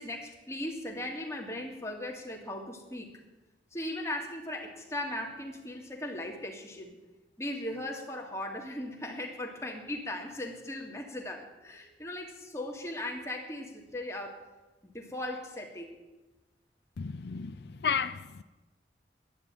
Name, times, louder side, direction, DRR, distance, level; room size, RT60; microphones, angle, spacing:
voice 1, 0.0-3.1 3.7-7.0 7.4-14.4 14.8-15.9, left 1 dB, 15° left, 2.1 m, -38 dB
voice 2, 17.0-18.4, left 6 dB, 75° left, 0.5 m, -33 dB
11.5 x 9.8 x 8.9 m
head